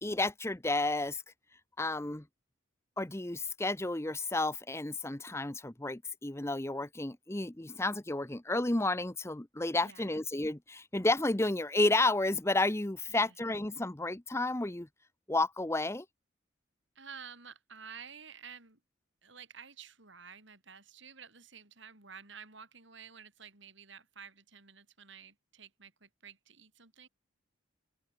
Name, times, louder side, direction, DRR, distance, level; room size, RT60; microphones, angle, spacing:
voice 1, 0.0-1.2 1.8-2.2 3.0-14.9 15.3-16.0, left 2 dB, 15° left, 0.8 m, -31 dB
voice 2, 9.8-10.1 13.1-13.4 17.0-18.8 19.2-27.1, right 6 dB, 60° right, 5.8 m, -51 dB
open air
head